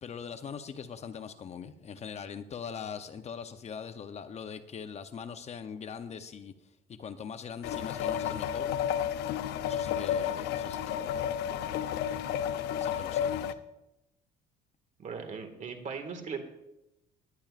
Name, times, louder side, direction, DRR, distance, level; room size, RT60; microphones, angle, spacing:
voice 1, 0.0-6.5 6.9-8.7 9.0-9.1 9.6-11.5 12.8-13.3, left 7 dB, 40° left, 0.7 m, -42 dB
sound 1, 7.6-13.5, left 9 dB, 85° left, 0.6 m, -31 dB
voice 2, 15.0-16.4, right 5 dB, 45° right, 1.9 m, -38 dB
19.0 x 10.5 x 2.5 m
cardioid pair, 110°, 17 cm